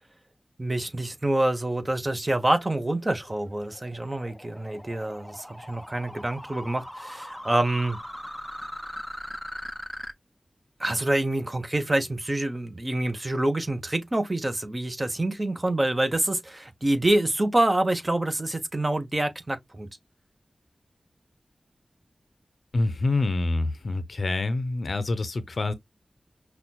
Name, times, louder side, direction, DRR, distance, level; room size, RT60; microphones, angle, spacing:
voice 1, 0.6-8.0 10.8-19.9, right 1 dB, 30° right, 0.8 m, -26 dB
sound 1, 2.2-10.1, equal, 5° left, 0.5 m, -40 dB
voice 2, 22.7-25.7, left 2 dB, 70° left, 0.6 m, -26 dB
5.7 x 2.3 x 2.3 m
wide cardioid pair, 65°, 0 cm